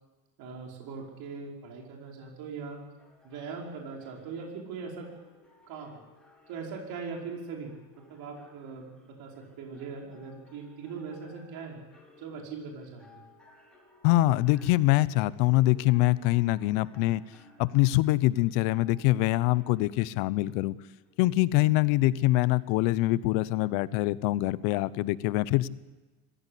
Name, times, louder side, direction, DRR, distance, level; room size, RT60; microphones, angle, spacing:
voice 1, 0.4-2.8 3.2-5.1 5.7-6.0 6.5-11.8 12.2-13.2, right 5 dB, 60° right, 0 dB, 5.2 m, -40 dB
sound 1, 3.0-22.6, left 2 dB, ahead, 4.3 m, -60 dB
voice 2, 14.0-17.2 17.6-20.8 21.2-25.7, left 17 dB, 75° left, 18 dB, 0.9 m, -24 dB
25.5 x 15.5 x 8.4 m, 1.2 s
cardioid pair, 130°, 42 cm